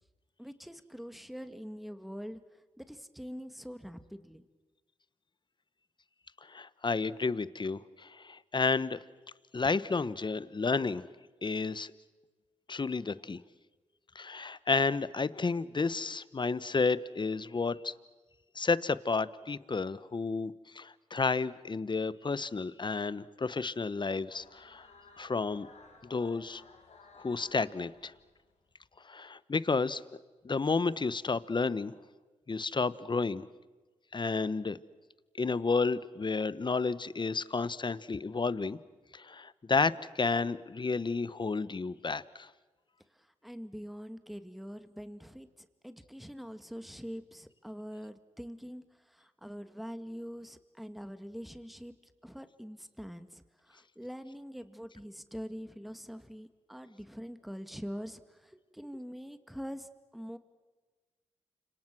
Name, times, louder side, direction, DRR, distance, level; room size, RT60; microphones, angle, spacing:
voice 1, 0.4-4.5 43.1-51.9 52.2-60.4, equal, ahead, 10 dB, 2.1 m, -44 dB
voice 2, 6.4-9.0 9.5-11.0 11.4-11.9 12.7-13.4 14.1-17.9 18.5-24.9 25.2-25.7 26.1-26.6 27.2-28.1 29.0-30.0 30.4-31.9 32.5-33.5 34.1-34.8 35.4-38.8 39.1-42.5, left 4 dB, 40° left, 17 dB, 1.1 m, -31 dB
sound 1, 24.3-28.6, left 4 dB, 65° left, 4.1 m, -57 dB
30.0 x 26.5 x 6.2 m, 1.3 s
supercardioid pair, 45°, 12 cm